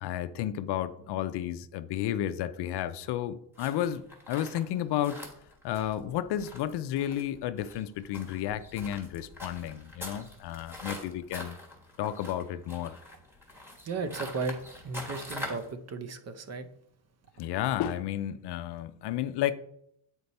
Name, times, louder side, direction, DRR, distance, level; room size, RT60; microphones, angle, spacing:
voice 1, 0.0-5.2 5.6-11.6 12.0-13.0 17.4-19.5, left 11 dB, 60° left, 0.5 m, -32 dB
sound 1, 3.6-15.7, left 1 dB, 5° right, 1.6 m, -44 dB
voice 2, 13.8-14.6 14.8-16.7, right 4 dB, 35° right, 0.7 m, -35 dB
8.2 x 4.4 x 4.1 m
cardioid pair, 125°, 48 cm